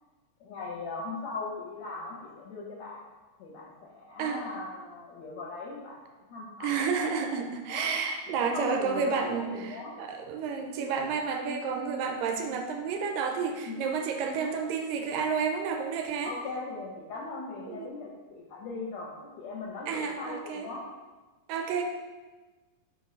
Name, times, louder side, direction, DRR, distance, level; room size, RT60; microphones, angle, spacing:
voice 1, 0.4-3.0 3.4-6.0 6.3-6.9 7.7-7.9 8.4-9.9 13.7-13.9 14.4-14.5 16.3-20.8, left 3 dB, 70° left, -4 dB, 1.7 m, -38 dB
voice 2, 6.6-16.3 17.7-17.9 19.9-20.7 21.5-21.8, right 6 dB, 85° right, 4 dB, 2.2 m, -31 dB
5.3 x 4.5 x 5.2 m, 1.3 s
omnidirectional pair, 4.0 m